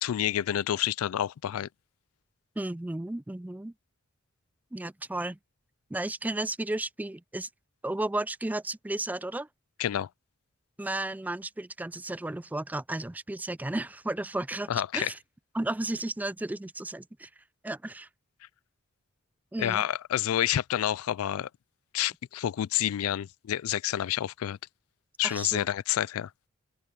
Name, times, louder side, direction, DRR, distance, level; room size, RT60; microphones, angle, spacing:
voice 1, 0.0-1.7 9.8-10.1 14.7-15.1 19.6-21.5 21.9-24.6 25.2-26.3, left 11 dB, 90° left, 0.3 m, -28 dB
voice 2, 2.6-3.7 4.7-5.4 5.9-7.5 7.8-9.5 10.8-15.2 15.5-17.3 17.6-18.1 19.5-19.8 25.2-25.7, right 2 dB, 10° right, 0.3 m, -33 dB
head